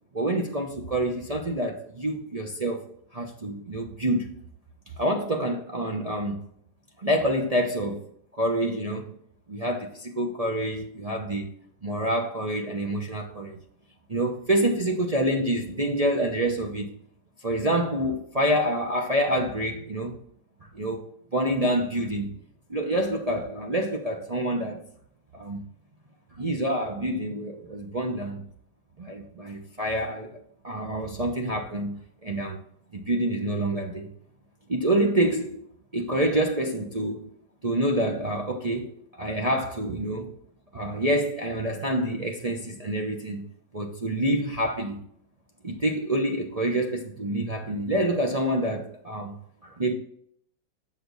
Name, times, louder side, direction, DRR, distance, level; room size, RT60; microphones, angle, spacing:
voice 1, 0.1-4.3 5.0-6.5 7.0-8.0 8.3-9.2 9.5-11.5 11.8-13.6 14.1-16.9 17.4-20.2 20.7-21.1 21.3-22.4 22.7-24.9 25.3-25.7 26.4-28.5 29.0-30.4 30.6-32.6 32.9-34.1 34.7-35.6 35.9-37.3 37.6-40.3 40.7-43.4 43.7-45.0 45.6-49.4 49.6-49.9, right 1 dB, 30° right, 0.7 m, -27 dB
7.7 x 6.6 x 4.0 m
omnidirectional pair, 1.9 m